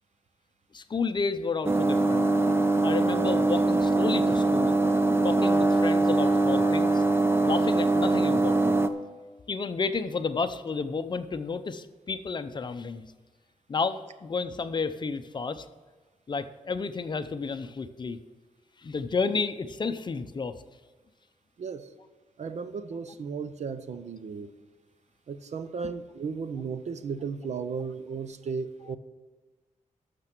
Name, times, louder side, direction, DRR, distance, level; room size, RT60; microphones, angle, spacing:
voice 1, 0.7-2.3 2.8-4.7 5.2-7.0 7.4-8.8 9.5-13.1 13.7-15.7 16.3-18.2 18.8-20.5, left 4 dB, 35° left, 10 dB, 0.6 m, -31 dB
sound 1, 1.6-8.9, right 2 dB, 20° right, 0.6 m, -23 dB
voice 2, 21.6-21.9 22.4-24.5 25.3-29.0, right 5 dB, 60° right, 11 dB, 0.8 m, -35 dB
12.5 x 6.7 x 6.0 m, 1.3 s
wide cardioid pair, 145°, 13 cm